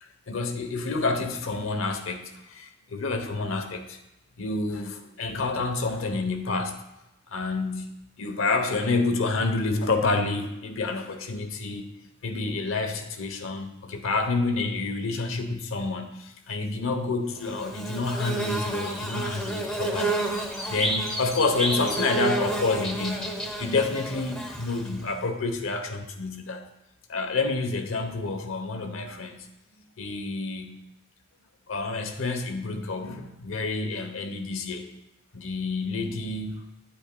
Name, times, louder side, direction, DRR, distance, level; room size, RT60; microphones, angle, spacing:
voice 1, 0.0-4.0 4.4-6.8 7.3-11.9 12.2-20.2 20.7-23.3 23.6-26.6 27.1-29.5 30.0-30.8 31.7-34.9 35.3-36.6, left 3 dB, 80° left, 6 dB, 0.8 m, -28 dB
Bird / Buzz, 17.4-25.1, right 1 dB, 5° left, 0.9 m, -30 dB
9.4 x 8.7 x 2.2 m, 0.92 s
head